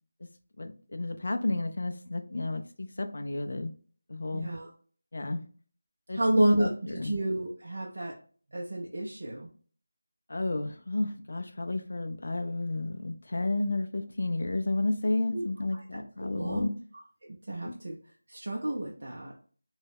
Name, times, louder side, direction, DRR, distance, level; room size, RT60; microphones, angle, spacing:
voice 1, 0.6-3.7 4.1-4.5 5.1-5.4 6.1-7.1 10.3-16.7 17.6-17.7, left 2 dB, 55° left, 7 dB, 0.4 m, -32 dB
voice 2, 4.3-4.7 6.1-8.1 8.5-9.5 15.3-15.5 15.9-16.0 16.3-16.7 17.2-18.0 18.3-19.3, right 1 dB, 60° right, -2 dB, 0.5 m, -29 dB
2.3 x 2.0 x 3.3 m, 0.43 s
figure-of-eight pair, 175°, 0 cm